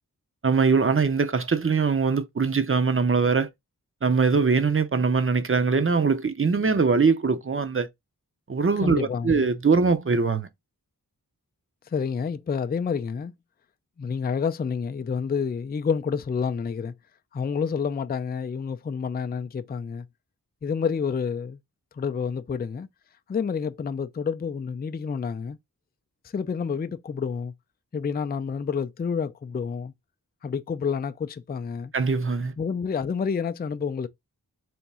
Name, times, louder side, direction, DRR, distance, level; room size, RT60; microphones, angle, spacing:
voice 1, 0.4-3.5 4.0-7.9 8.5-10.5 31.9-32.5, right 5 dB, 35° right, 0.6 m, -22 dB
voice 2, 8.8-9.4 11.9-13.3 14.0-16.9 17.3-20.1 20.6-21.6 21.9-22.9 23.3-25.6 26.3-27.5 27.9-29.9 30.4-31.9 32.6-34.1, left 6 dB, 25° left, 0.4 m, -29 dB
3.5 x 2.9 x 4.1 m
wide cardioid pair, 60°, 37 cm